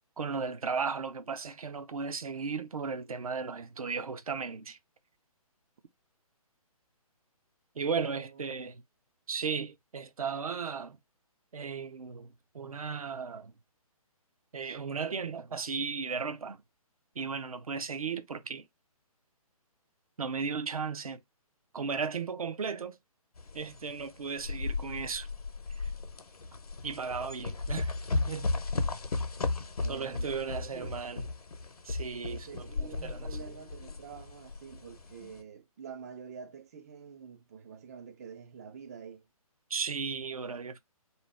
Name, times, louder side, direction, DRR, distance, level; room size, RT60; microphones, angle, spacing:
voice 1, 0.2-4.8 7.8-8.8 9.3-11.0 11.5-13.5 14.5-16.6 17.2-18.6 20.2-21.2 21.7-23.0 23.5-25.3 25.8-25.9 26.8-28.5 29.9-31.3 31.8-33.4 39.7-40.8, right 5 dB, 70° right, 0.8 m, -35 dB
voice 2, 8.1-8.5 29.8-31.1 32.3-39.3, right 7 dB, 25° right, 0.4 m, -47 dB
sound 1, 23.4-35.4, left 3 dB, 75° left, 0.9 m, -35 dB
3.6 x 3.0 x 3.3 m
figure-of-eight pair, 140°, 19 cm